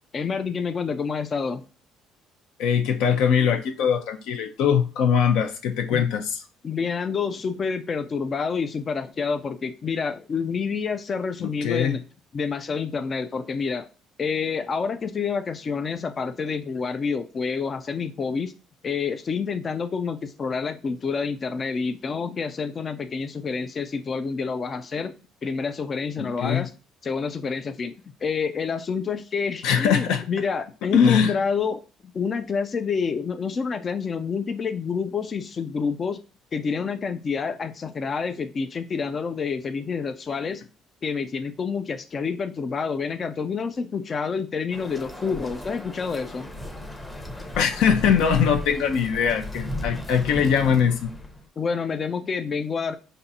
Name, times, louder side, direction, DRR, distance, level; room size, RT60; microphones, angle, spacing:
voice 1, 0.1-1.6 5.9-6.1 6.6-12.0 12.3-13.9 14.2-18.5 18.8-25.1 25.4-26.7 27.0-28.0 28.2-31.8 32.1-36.2 36.5-40.6 41.0-46.5 51.6-52.9, left 5 dB, 35° left, 0.3 m, -28 dB
voice 2, 2.6-6.4 11.4-12.0 26.2-26.6 29.6-30.3 30.9-31.4 47.6-51.1, left 7 dB, 80° left, 0.6 m, -22 dB
sound 1, 44.7-51.5, left 1 dB, 10° left, 0.7 m, -35 dB
5.2 x 2.5 x 2.7 m
cardioid pair, 115°, 0 cm